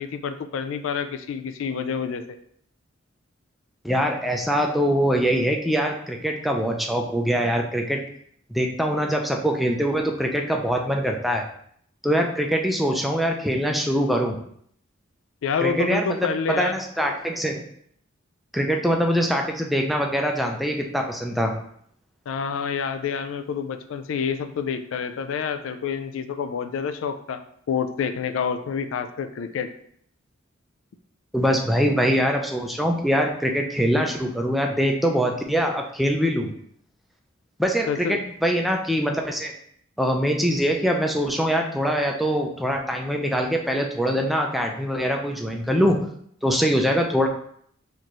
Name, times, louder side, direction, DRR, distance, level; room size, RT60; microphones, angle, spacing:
voice 1, 0.0-2.2 15.4-16.7 22.3-27.4 27.7-29.7 37.9-38.2, left 6 dB, 70° left, 9 dB, 0.3 m, -28 dB
voice 2, 3.8-8.0 8.5-11.4 12.0-14.4 15.6-16.3 16.6-17.6 18.5-21.5 31.3-36.5 37.6-39.5 40.0-46.0 46.4-47.3, equal, ahead, 1 dB, 0.4 m, -23 dB
4.3 x 2.6 x 3.0 m, 0.66 s
head